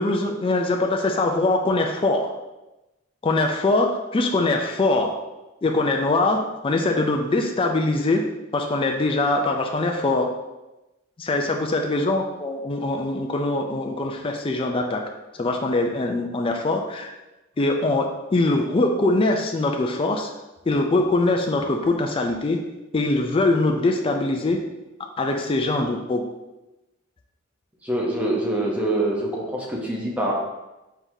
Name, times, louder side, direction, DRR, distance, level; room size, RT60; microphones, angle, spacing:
voice 1, 0.0-2.3 3.2-3.9 4.1-5.1 5.6-8.2 8.5-10.3 11.2-15.0 15.3-17.1 17.6-20.3 20.7-22.6 22.9-24.6 25.2-26.2, left 2 dB, 25° left, 2 dB, 0.4 m, -22 dB
voice 2, 27.8-30.3, right 1 dB, 5° right, -3 dB, 0.8 m, -25 dB
4.5 x 3.9 x 2.7 m, 1.0 s
head